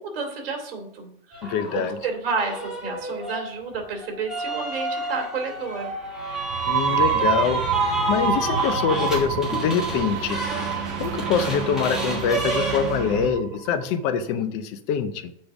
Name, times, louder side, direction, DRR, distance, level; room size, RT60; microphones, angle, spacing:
voice 1, 0.0-5.9, right 4 dB, 70° right, 3 dB, 2.6 m, -31 dB
sound 1, 1.3-1.9 2.4-13.3, right 1 dB, ahead, 1.4 m, -30 dB
voice 2, 1.4-2.0 6.7-7.6 8.1-10.4 11.0-15.3, left 7 dB, 25° left, 9 dB, 0.5 m, -24 dB
sound 2, 5.6-13.3, right 7 dB, 50° right, 1.1 m, -34 dB
sound 3, 6.4-13.8, right 8 dB, 25° right, 0.9 m, -28 dB
7.1 x 5.1 x 6.1 m, 0.72 s
supercardioid pair, 175°, 29 cm